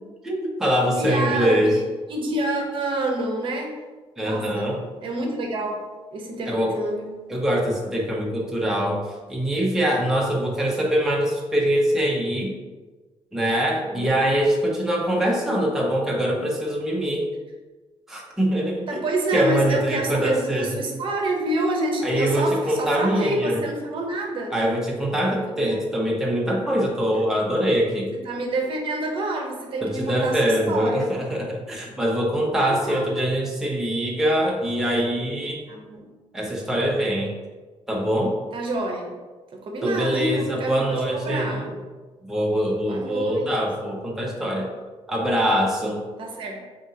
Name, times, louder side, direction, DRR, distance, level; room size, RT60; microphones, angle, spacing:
voice 1, 0.2-1.8 4.2-4.8 6.5-6.8 7.3-12.5 13.3-17.3 18.1-19.0 19.3-20.8 22.0-23.6 24.5-28.1 29.8-35.6 36.3-37.3 37.9-38.4 39.8-41.7 42.2-44.7 45.1-46.0, equal, 5° right, -3 dB, 0.6 m, -23 dB
voice 2, 1.0-1.7 2.1-3.7 4.2-4.7 5.0-7.1 13.9-14.2 15.1-15.3 18.9-24.5 25.7-25.8 27.1-27.2 28.2-31.1 32.6-33.2 35.7-36.1 38.5-39.1 39.5-40.8 41.1-41.7 42.8-43.5 46.2-46.6, right 1 dB, 55° right, 1 dB, 0.7 m, -28 dB
5.1 x 2.8 x 2.7 m, 1.3 s
cardioid pair, 150°, 11 cm